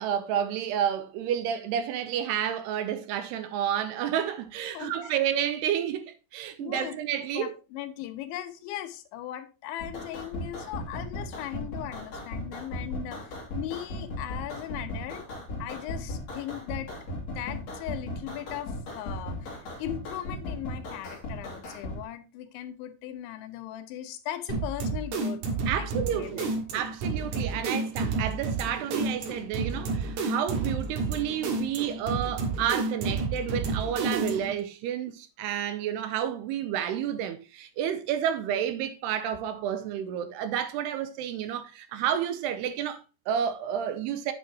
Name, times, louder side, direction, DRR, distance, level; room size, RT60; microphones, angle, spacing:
voice 1, 0.0-7.5 25.7-26.4 26.7-44.3, right 9 dB, 80° right, 2.5 m, -30 dB
voice 2, 4.7-5.2 6.6-7.0 7.4-15.3 15.6-16.9 17.3-25.4 25.8-26.5, left 12 dB, 90° left, 3.4 m, -38 dB
sound 1, 9.8-22.0, left 1 dB, 40° left, 3.2 m, -37 dB
sound 2, 24.5-34.6, right 3 dB, 55° right, 2.4 m, -30 dB
9.4 x 8.5 x 2.9 m
omnidirectional pair, 5.2 m